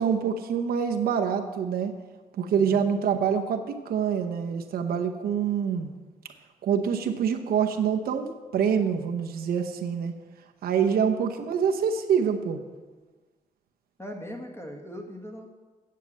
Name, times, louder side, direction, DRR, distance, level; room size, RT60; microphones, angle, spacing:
voice 1, 0.0-1.9 2.4-5.9 6.6-10.1 10.6-12.6, right 7 dB, 85° right, 5 dB, 0.9 m, -26 dB
voice 2, 2.5-2.9 14.0-15.5, equal, 15° left, 2 dB, 1.7 m, -40 dB
9.3 x 6.6 x 7.4 m, 1.3 s
cardioid pair, 115°, 15 cm